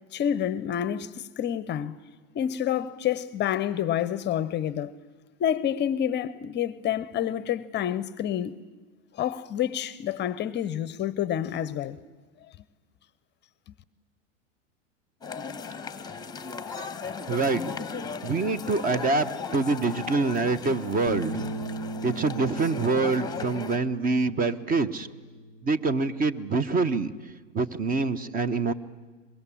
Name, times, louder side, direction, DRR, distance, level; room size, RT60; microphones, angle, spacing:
voice 1, 0.1-2.0 2.3-4.9 5.4-8.6 9.1-12.0, left 10 dB, 30° left, 0.7 m, -28 dB
sound 1, 15.2-23.8, left 5 dB, 10° left, 1.2 m, -37 dB
voice 2, 17.3-17.6 18.2-21.5 22.0-25.1 25.6-27.1 27.5-28.7, right 3 dB, 20° right, 0.9 m, -25 dB
Bass guitar, 21.1-27.3, right 2 dB, 65° right, 2.2 m, -39 dB
24.0 x 21.5 x 9.9 m
hypercardioid pair, 95°, 38 cm